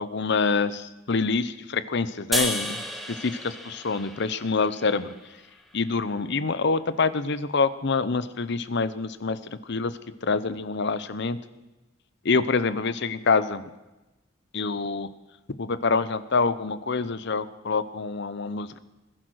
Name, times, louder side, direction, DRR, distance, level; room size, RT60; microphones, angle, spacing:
voice 1, 0.0-2.8 3.2-5.1 5.7-9.4 9.7-9.9 10.2-11.4 12.2-13.6 14.5-15.1 15.6-18.8, left 4 dB, 55° left, 15 dB, 0.8 m, -26 dB
sound 1, 2.3-5.6, equal, ahead, 1.6 m, -33 dB
20.5 x 10.5 x 6.4 m, 1.0 s
head